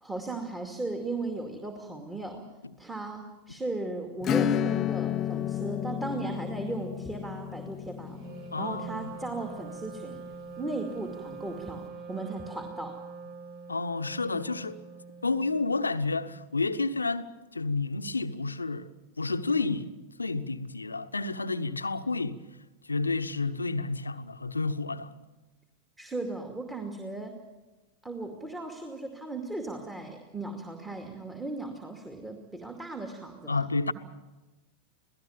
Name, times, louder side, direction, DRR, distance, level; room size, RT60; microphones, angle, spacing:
voice 1, 0.0-2.5 2.8-8.2 8.6-10.2 10.6-13.0 26.0-27.4 28.0-33.6, right 2 dB, 10° right, 2.4 m, -36 dB
Acoustic guitar / Strum, 4.2-10.5, left 10 dB, 30° left, 0.8 m, -32 dB
Wind instrument woodwind instrument, 8.1-16.0, right 5 dB, 45° right, 1.9 m, -44 dB
voice 2, 8.5-9.1 13.7-14.8 15.2-18.9 19.2-22.4 22.9-25.2 33.5-33.9, left 3 dB, 80° left, 1.1 m, -30 dB
27.5 x 18.0 x 7.3 m
figure-of-eight pair, 90°, 0 cm